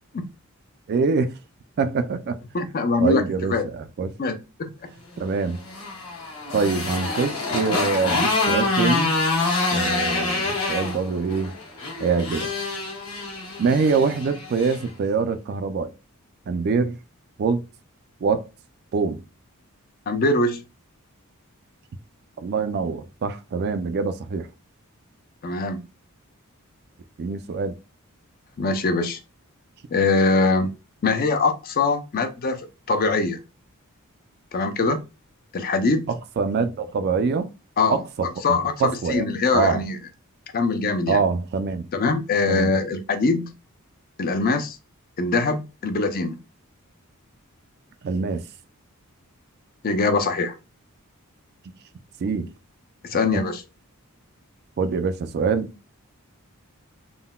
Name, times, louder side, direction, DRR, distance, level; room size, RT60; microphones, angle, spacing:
voice 1, 0.9-1.3 1.8-2.4 3.0-4.1 5.2-5.6 6.5-9.1 9.7-11.5 12.0-12.5 13.6-15.9 16.5-17.0 17.4-17.6 18.2-18.5 18.9-19.2 22.4-24.5 27.2-27.7 36.1-37.5 37.9-39.3 39.5-39.8 41.1-41.9 42.5-42.7 48.0-48.4 52.2-52.5 53.3-53.4 54.8-55.7, right 5 dB, 45° right, 0.3 m, -24 dB
voice 2, 2.5-3.2 3.5-3.7 4.2-4.7 20.1-20.6 25.4-25.8 28.6-29.2 29.9-30.7 31.0-32.6 32.9-33.4 34.5-35.0 35.5-36.1 37.8-38.0 38.4-38.7 39.1-40.0 40.5-41.2 41.9-43.5 44.2-44.8 45.2-46.4 49.8-50.5 53.0-53.6, left 3 dB, 40° left, 0.4 m, -22 dB
Motorcycle, 5.4-14.8, left 3 dB, 80° left, 1.3 m, -26 dB
3.7 x 2.1 x 2.2 m
head